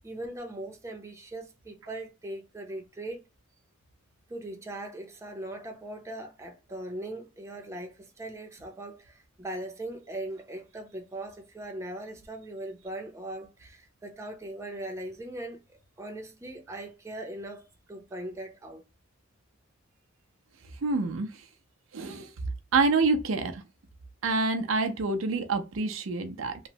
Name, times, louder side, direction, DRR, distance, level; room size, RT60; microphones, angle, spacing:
voice 1, 0.0-3.2 4.3-18.8, right 1 dB, 15° right, 0.6 m, -40 dB
voice 2, 20.8-21.4 21.9-22.3 22.7-23.6 24.2-26.6, right 3 dB, 80° right, 0.5 m, -27 dB
3.0 x 2.0 x 2.7 m
head